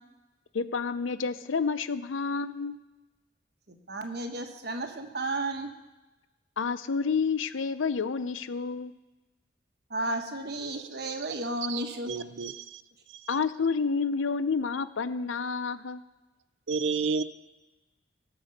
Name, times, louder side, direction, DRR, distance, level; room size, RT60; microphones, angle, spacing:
voice 1, 0.5-2.8 6.6-8.9 13.3-16.0, left 5 dB, 80° left, 14 dB, 0.6 m, -29 dB
voice 2, 3.7-5.7 9.9-12.1, right 2 dB, 55° right, 5 dB, 1.3 m, -33 dB
voice 3, 10.7-11.1 11.7-11.8 12.1-12.8 13.2-13.4 16.7-17.2, right 5 dB, 70° right, 14 dB, 0.5 m, -31 dB
18.0 x 6.9 x 5.4 m, 1.1 s
head